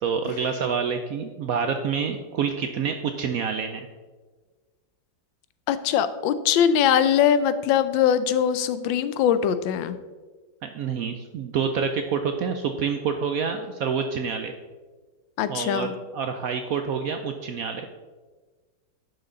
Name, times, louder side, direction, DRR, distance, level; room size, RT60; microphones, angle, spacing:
voice 1, 0.0-3.8 10.6-14.5 15.5-17.8, right 6 dB, 75° right, 6 dB, 0.8 m, -27 dB
voice 2, 5.7-10.0 15.4-15.9, left 9 dB, 90° left, 12 dB, 1.4 m, -22 dB
10.5 x 6.0 x 3.8 m, 1.3 s
omnidirectional pair, 2.0 m